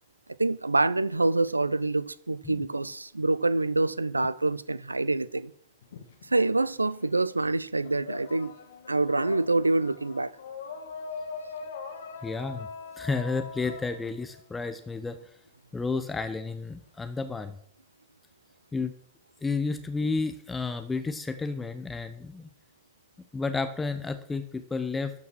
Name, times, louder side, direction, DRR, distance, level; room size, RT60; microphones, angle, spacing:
voice 1, 0.4-5.5 6.3-8.5 8.9-10.3, right 2 dB, 80° right, 0.4 m, -26 dB
sound 1, 5.8-7.1 7.4-15.2, left 5 dB, 65° left, 1.3 m, -42 dB
voice 2, 12.2-12.7 13.0-15.2 15.7-17.6 18.7-18.9 19.4-22.5 23.3-25.1, left 4 dB, 10° left, 0.8 m, -31 dB
12.5 x 5.9 x 6.0 m
figure-of-eight pair, 90°, 0 cm